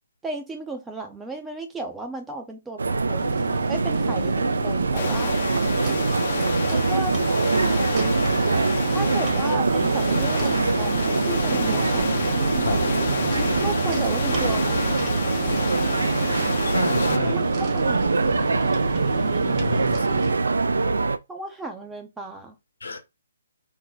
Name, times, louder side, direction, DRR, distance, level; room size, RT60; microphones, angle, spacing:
voice 1, 0.2-3.4 3.7-5.4 6.7-7.1 8.9-12.1 13.6-14.8 17.2-17.5 17.7-18.3 21.3-22.5, right 2 dB, 5° right, 0.4 m, -34 dB
sound 1, 2.8-21.2, right 3 dB, 85° right, 0.3 m, -23 dB
sound 2, 3.2-20.3, right 2 dB, 30° right, 0.8 m, -31 dB
sound 3, 4.9-17.2, left 6 dB, 50° left, 0.5 m, -32 dB
voice 2, 16.6-17.4 19.5-20.2 22.8-23.0, left 2 dB, 80° left, 0.9 m, -30 dB
2.6 x 2.2 x 3.9 m
hypercardioid pair, 150°, 0 cm